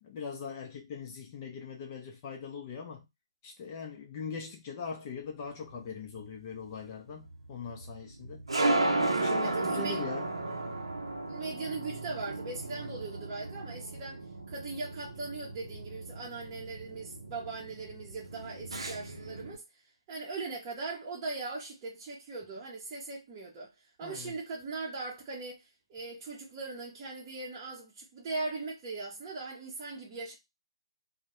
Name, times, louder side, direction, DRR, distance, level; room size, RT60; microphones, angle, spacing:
voice 1, 0.0-3.1 3.4-8.4 9.2-10.3 24.0-24.3, left 5 dB, 35° left, 0.5 m, -41 dB
sound 1, 5.5-19.6, right 2 dB, 85° right, 0.5 m, -35 dB
voice 2, 9.4-10.0 11.3-14.2 14.5-19.8 20.1-30.4, right 3 dB, 30° right, 0.6 m, -39 dB
2.2 x 2.0 x 2.9 m
hypercardioid pair, 145°, 3 cm